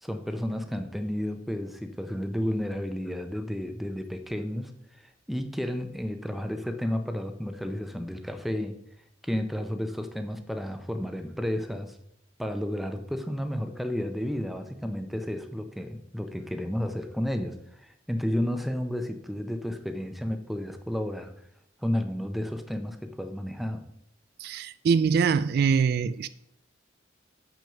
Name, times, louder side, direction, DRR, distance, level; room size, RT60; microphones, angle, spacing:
voice 1, 0.0-4.7 5.0-8.8 9.2-12.0 12.4-21.3 21.8-23.9, equal, ahead, 0.7 m, -32 dB
voice 2, 24.4-26.3, right 6 dB, 55° right, 0.3 m, -23 dB
7.0 x 6.2 x 5.8 m
head